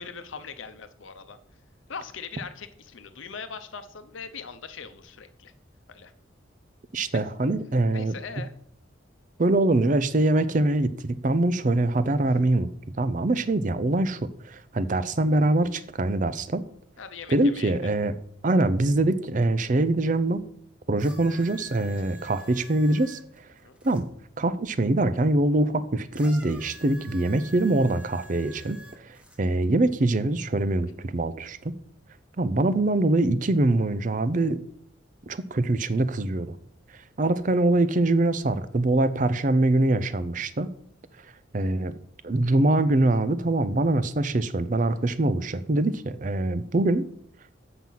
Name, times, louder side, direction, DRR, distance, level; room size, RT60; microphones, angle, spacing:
voice 1, 0.0-1.4 1.9-5.5 5.9-6.1 7.1-7.2 7.9-8.5 17.0-17.8 23.6-23.8, left 5 dB, 85° left, 10 dB, 0.8 m, -40 dB
voice 2, 6.9-8.1 9.4-12.7 13.0-16.7 17.3-18.1 18.4-20.4 20.9-23.5 23.8-24.1 24.4-31.7 32.4-34.6 35.3-36.6 37.2-40.7 41.5-41.9 42.2-47.1, right 2 dB, 40° right, 14 dB, 0.5 m, -24 dB
sound 1, 21.0-24.0 26.1-29.4 30.3-30.4, right 1 dB, 5° right, 1.0 m, -47 dB
7.6 x 5.9 x 5.5 m, 0.66 s
head